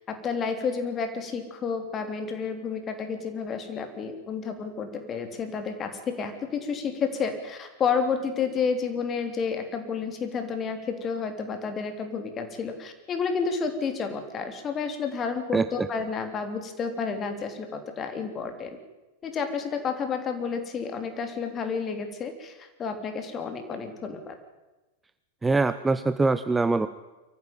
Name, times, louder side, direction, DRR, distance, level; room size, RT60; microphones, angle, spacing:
voice 1, 0.1-18.8 19.2-24.4, left 5 dB, 25° left, 7 dB, 3.3 m, -30 dB
voice 2, 15.5-15.9 25.4-26.9, right 3 dB, 10° right, 12 dB, 0.7 m, -23 dB
24.0 x 14.5 x 9.1 m, 1.1 s
figure-of-eight pair, 90°, 0 cm